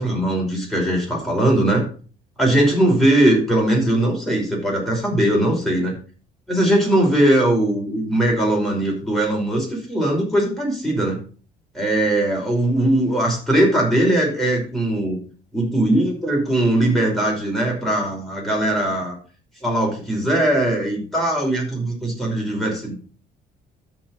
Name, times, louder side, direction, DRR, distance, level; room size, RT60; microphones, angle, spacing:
voice 1, 0.0-1.9 2.4-6.0 6.5-11.2 11.7-15.2 15.5-19.2 19.6-22.9, right 1 dB, ahead, -2 dB, 5.5 m, -20 dB
13.0 x 5.0 x 5.7 m, 0.40 s
cardioid pair, 110°, 17 cm